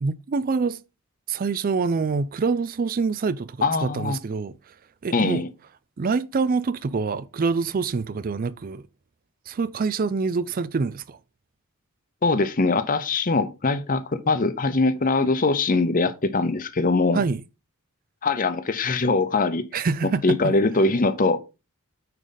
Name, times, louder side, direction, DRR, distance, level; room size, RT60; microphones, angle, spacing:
voice 1, 0.0-0.8 1.3-4.7 5.0-5.4 6.0-8.8 9.5-11.2 17.1-17.4 19.7-20.5, right 4 dB, 40° right, 0.4 m, -26 dB
voice 2, 3.6-4.2 5.1-5.5 12.2-17.2 18.2-19.6 20.2-21.4, left 3 dB, 40° left, 0.7 m, -22 dB
9.1 x 4.9 x 3.9 m
head